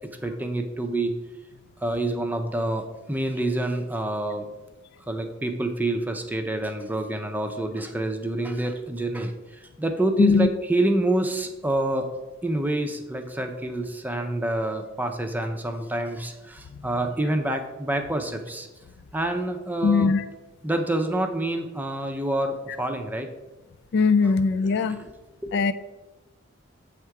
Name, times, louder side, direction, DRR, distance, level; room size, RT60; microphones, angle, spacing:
voice 1, 0.2-1.1 1.8-4.5 5.1-12.1 12.4-18.7 19.1-20.1 20.6-23.3 24.2-24.3 24.7-25.0 25.4-25.5, right 1 dB, 10° right, 5 dB, 0.5 m, -27 dB
voice 2, 10.2-10.5 19.8-20.2 23.9-25.0 25.5-25.7, left 5 dB, 60° left, 12 dB, 0.3 m, -20 dB
7.8 x 3.6 x 4.7 m, 1.1 s
head